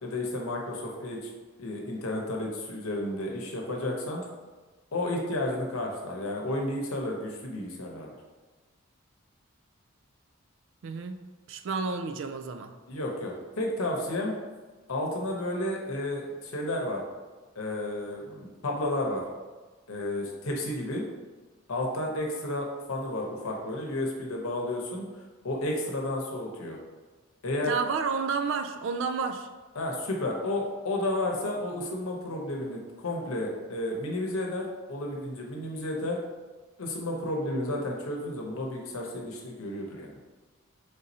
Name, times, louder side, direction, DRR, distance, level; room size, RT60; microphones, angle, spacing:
voice 1, 0.0-1.3 1.6-4.3 4.9-8.1 12.9-14.3 14.9-17.0 17.6-19.2 19.9-21.0 21.7-25.1 25.4-26.8 27.4-27.8 29.7-36.2 36.8-40.2, left 1 dB, 85° left, 0 dB, 0.8 m, -32 dB
voice 2, 10.8-11.2 11.5-12.7 27.7-29.5, right 5 dB, 60° right, 7 dB, 0.3 m, -30 dB
3.7 x 2.6 x 4.1 m, 1.3 s
head